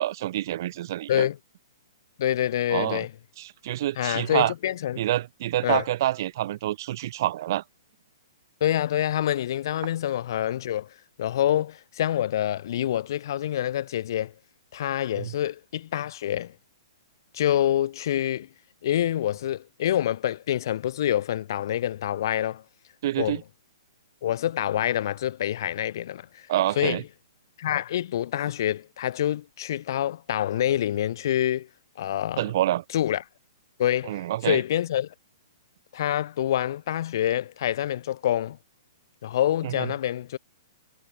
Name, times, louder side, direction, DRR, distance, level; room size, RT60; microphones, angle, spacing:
voice 1, 0.0-1.3 2.7-3.0 3.4-4.5 5.0-7.6 15.2-15.3 23.0-23.4 26.5-27.0 32.4-32.8 34.1-34.6 39.6-39.9, right 13 dB, 40° right, 0.5 m, -27 dB
voice 2, 2.2-3.1 4.0-5.1 5.6-5.8 8.6-10.9 11.2-14.3 14.7-16.5 17.3-18.5 18.8-22.6 23.2-23.4 24.2-26.5 26.8-27.0 27.6-31.7 32.0-32.4 32.9-33.2 33.8-35.1 35.9-38.6 39.2-40.4, left 11 dB, 45° left, 0.4 m, -26 dB
hypercardioid pair, 170°, 3 cm